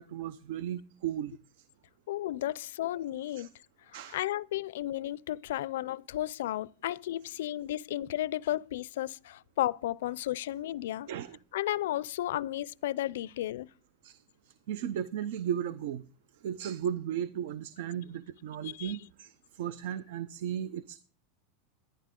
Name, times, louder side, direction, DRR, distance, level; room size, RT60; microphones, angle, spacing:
voice 1, 0.0-1.4 3.4-3.5 3.9-4.2 11.1-11.4 14.0-14.2 14.7-16.0 16.4-21.0, right 9 dB, 70° right, 0.6 m, -35 dB
voice 2, 2.1-3.5 4.1-11.1 11.5-13.7 18.6-19.0, left 13 dB, 85° left, 0.4 m, -33 dB
11.5 x 11.0 x 3.7 m
supercardioid pair, 155°, 0 cm